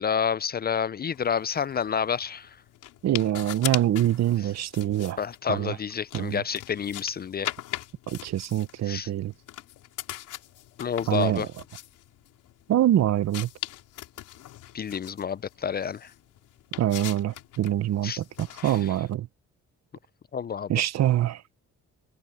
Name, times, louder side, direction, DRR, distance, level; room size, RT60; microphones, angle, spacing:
voice 1, 0.0-2.6 4.4-4.5 5.2-7.5 8.8-9.1 10.8-11.5 14.7-16.1 18.0-18.2 18.6-18.9 20.3-20.7, left 7 dB, 35° left, 0.4 m, -29 dB
sound 1, 1.1-19.1, left 14 dB, 90° left, 4.2 m, -41 dB
voice 2, 3.0-5.2 5.5-5.8 6.1-6.4 8.1-9.3 11.1-11.5 12.7-13.5 16.8-19.3 20.7-21.4, right 12 dB, 60° right, 0.8 m, -25 dB
cardioid pair, 90°, 30 cm